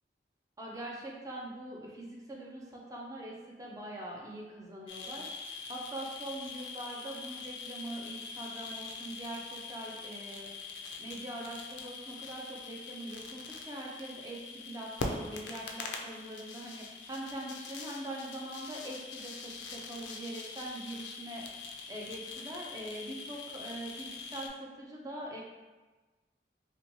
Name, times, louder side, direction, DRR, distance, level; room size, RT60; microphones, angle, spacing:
voice 1, 0.6-10.5 11.0-14.4 14.6-21.4 21.9-25.4, right 1 dB, 20° right, -2 dB, 0.4 m, -43 dB
sound 1, 4.9-24.5, left 4 dB, 80° left, 0.3 m, -43 dB
2.8 x 2.2 x 2.7 m, 1.2 s
head